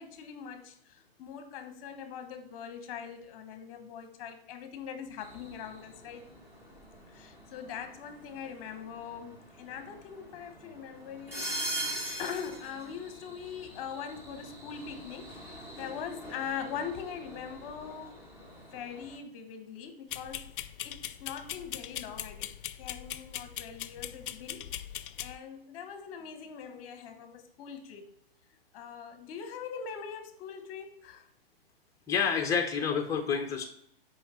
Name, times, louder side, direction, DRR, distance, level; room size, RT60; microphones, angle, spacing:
voice 1, 0.0-6.3 7.1-11.5 11.7-18.3 18.7-20.5 20.8-22.5 22.8-24.7 25.2-28.1 28.7-31.2, left 7 dB, 35° left, 8 dB, 1.1 m, -42 dB
sound 1, 5.2-19.2, right 1 dB, 10° right, 1.0 m, -43 dB
sound 2, 20.1-25.3, left 11 dB, 60° left, 0.4 m, -40 dB
voice 2, 32.1-33.6, left 6 dB, 10° left, 3 dB, 0.8 m, -28 dB
5.7 x 4.9 x 4.3 m, 0.70 s
hypercardioid pair, 140°, 30 cm